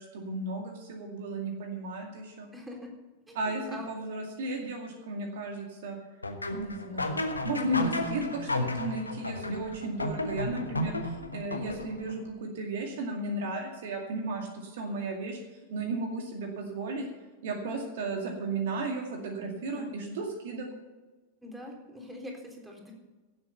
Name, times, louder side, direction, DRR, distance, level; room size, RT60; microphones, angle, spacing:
voice 1, 0.0-2.5 3.3-6.0 6.5-15.4 15.7-17.0 17.4-20.7, right 2 dB, 55° right, 2 dB, 2.2 m, -34 dB
voice 2, 2.5-2.9 3.3-3.9 7.7-8.0 19.7-19.9 21.4-22.9, left 1 dB, 10° right, 1 dB, 3.7 m, -42 dB
sound 1, 6.2-12.1, left 2 dB, 80° left, 1.2 m, -33 dB
17.0 x 8.0 x 5.8 m, 1.2 s
figure-of-eight pair, 90°, 0 cm